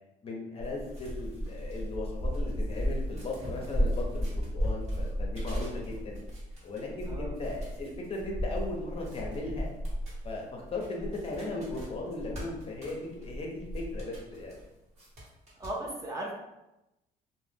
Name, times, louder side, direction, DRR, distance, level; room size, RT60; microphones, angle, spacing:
voice 1, 0.2-6.2 6.6-9.7 10.2-14.6, left 2 dB, 35° left, -1 dB, 0.6 m, -37 dB
sound 1, 0.6-14.6 15.0-15.7, equal, 40° right, 1.1 m, -35 dB
voice 2, 15.6-16.3, right 1 dB, 20° right, -2 dB, 0.5 m, -36 dB
2.4 x 2.1 x 3.4 m, 0.94 s
cardioid pair, 110°, 17 cm